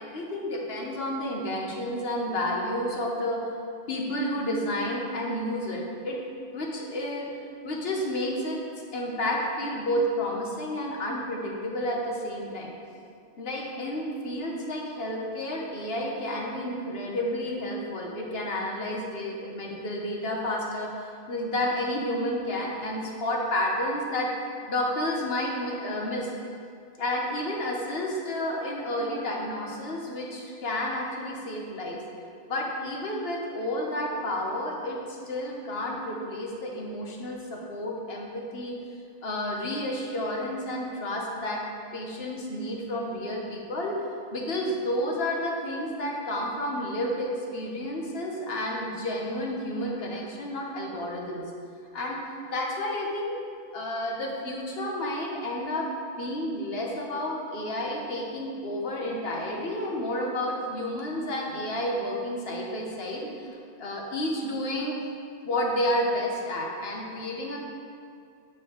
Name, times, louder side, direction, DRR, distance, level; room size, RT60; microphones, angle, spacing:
voice 1, 0.0-3.4 3.9-6.2 6.5-7.2 7.6-8.6 8.9-12.7 13.4-24.3 24.7-26.3 27.0-32.0 32.5-38.8 39.2-41.6 41.9-44.0 44.3-51.5 51.9-52.2 52.5-53.4 53.7-55.9 56.2-65.0 65.4-67.6, left 1 dB, 70° left, -1 dB, 1.2 m, -31 dB
8.1 x 4.5 x 4.5 m, 2.3 s
omnidirectional pair, 1.1 m